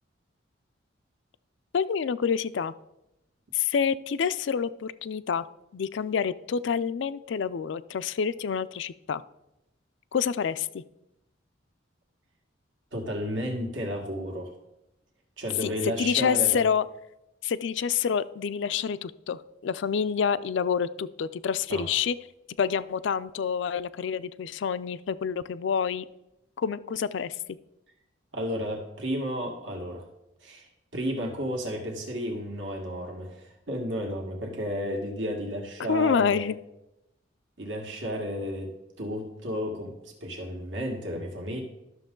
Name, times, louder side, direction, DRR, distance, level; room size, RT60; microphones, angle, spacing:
voice 1, 1.7-2.7 3.5-5.5 5.7-9.2 10.1-10.8 15.6-16.8 17.4-22.2 22.6-26.1 26.6-27.4 35.9-36.5, left 7 dB, 70° left, 15 dB, 0.4 m, -27 dB
voice 2, 12.9-14.5 15.4-16.6 21.7-21.9 28.3-30.1 30.4-36.5 37.6-41.6, equal, 75° right, 1 dB, 1.8 m, -33 dB
12.0 x 6.5 x 3.8 m, 0.90 s
head